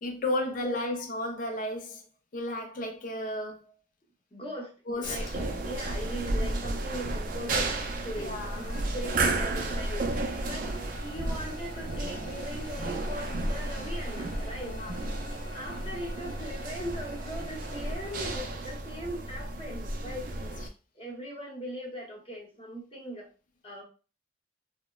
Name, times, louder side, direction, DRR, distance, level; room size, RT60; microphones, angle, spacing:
voice 1, 0.0-2.0 2.3-3.6 4.9-5.2 8.2-8.7 14.7-15.0 20.4-20.5, left 1 dB, 45° left, 0.4 m, -33 dB
voice 2, 4.3-7.8 8.0-10.7 11.0-20.3 20.9-23.3 23.6-23.8, equal, 30° left, 0.8 m, -40 dB
sound 1, 5.0-20.7, right 2 dB, 50° right, 0.4 m, -33 dB
sound 2, 8.4-18.4, left 2 dB, 90° left, 0.7 m, -49 dB
2.9 x 2.0 x 2.2 m
head